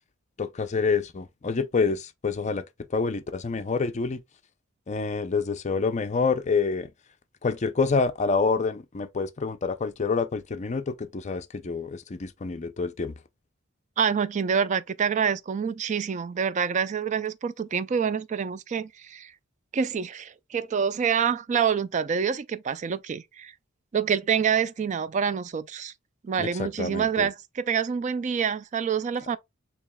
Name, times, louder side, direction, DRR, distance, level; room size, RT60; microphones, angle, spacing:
voice 1, 0.4-2.6 2.9-4.2 4.9-6.9 7.4-13.1 26.4-27.3, left 4 dB, 35° left, 0.5 m, -27 dB
voice 2, 14.0-19.3 19.7-23.5 23.9-25.9 26.2-29.4, right 7 dB, 35° right, 0.3 m, -27 dB
6.9 x 2.9 x 2.2 m
head